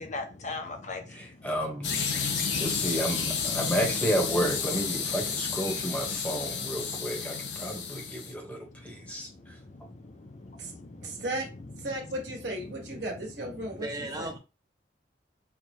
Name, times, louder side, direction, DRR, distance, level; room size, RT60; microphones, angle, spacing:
voice 1, 0.0-1.5 8.2-11.2 12.9-13.0 13.6-13.8, left 3 dB, 40° left, 0.6 m, -42 dB
voice 2, 1.1-2.3 2.6-9.3 9.8-9.9, right 1 dB, 10° left, 0.9 m, -32 dB
sound 1, 1.8-8.3, left 5 dB, 80° left, 0.7 m, -31 dB
voice 3, 11.0-11.5 11.8-13.9 14.2-14.3, right 1 dB, 70° right, 1.3 m, -35 dB
voice 4, 13.7-14.4, right 1 dB, 20° right, 0.9 m, -37 dB
4.5 x 2.3 x 2.8 m
head